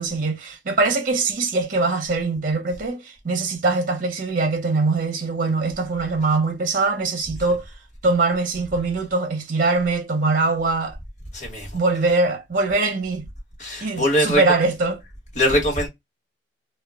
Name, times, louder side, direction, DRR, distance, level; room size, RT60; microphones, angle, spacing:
voice 1, 0.0-7.7 8.0-11.0 11.7-13.3 13.8-15.0, right 3 dB, 45° right, 0.6 m, -22 dB
voice 2, 11.3-11.8 13.6-14.4 15.3-15.9, equal, 40° left, 1.1 m, -21 dB
2.2 x 2.1 x 3.4 m
head